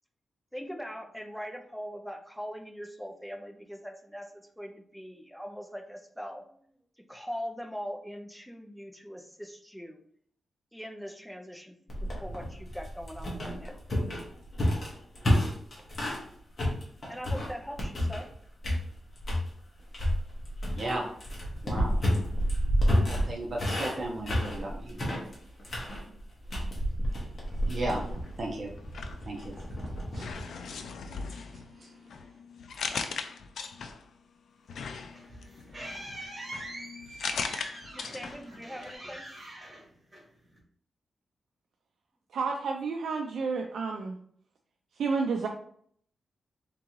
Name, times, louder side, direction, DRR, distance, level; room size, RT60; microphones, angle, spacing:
voice 1, 0.5-6.7 7.1-10.0 10.7-13.8 15.8-15.9 17.1-18.3 37.9-39.2, equal, ahead, 5 dB, 0.5 m, -41 dB
sound 1, 11.9-16.3 16.6-18.3 18.6-19.5 19.9-30.4, equal, 35° left, 1.4 m, -30 dB
voice 2, 20.8-21.1 21.6-22.0 23.1-25.0 27.7-28.0 28.4-28.7 29.2-29.5 30.1-30.3 31.3-31.9, right 1 dB, 40° right, 0 dB, 0.8 m, -35 dB
sound 2, 28.8-29.7 30.1-34.2 34.7-38.5 38.8-38.9, left 5 dB, 75° left, 0.4 m, -39 dB
sound 3, 34.8-40.6, right 1 dB, 20° right, 1.3 m, -44 dB
voice 3, 42.3-44.2 45.0-45.5, right 4 dB, 80° right, 3 dB, 0.4 m, -30 dB
3.7 x 3.6 x 3.0 m, 0.62 s
wide cardioid pair, 145°, 0 cm